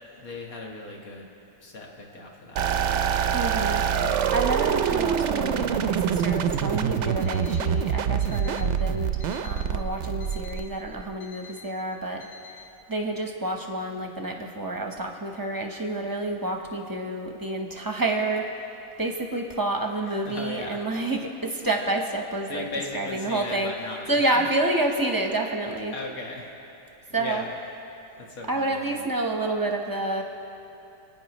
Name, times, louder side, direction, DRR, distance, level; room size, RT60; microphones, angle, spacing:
voice 1, 0.2-1.3 1.6-3.3 20.1-20.8 22.5-24.3 25.9-26.5 27.1-27.5 28.2-28.9, left 2 dB, 80° left, -1 dB, 2.0 m, -37 dB
sound 1, 2.6-11.0, right 8 dB, 65° right, 0.8 m, -25 dB
voice 2, 3.3-3.8 4.1-9.1 9.4-12.6 12.9-18.6 19.0-22.7 22.9-23.7 24.1-25.9 27.1-27.4 28.5-30.2, right 2 dB, 20° right, 2 dB, 0.8 m, -29 dB
Alarm, 7.2-7.7 8.2-8.7 9.2-9.7 10.2-10.7 11.2-11.7 12.2-12.7, left 5 dB, 35° left, 2.8 m, -48 dB
28.0 x 9.4 x 3.0 m, 2.9 s
omnidirectional pair, 1.5 m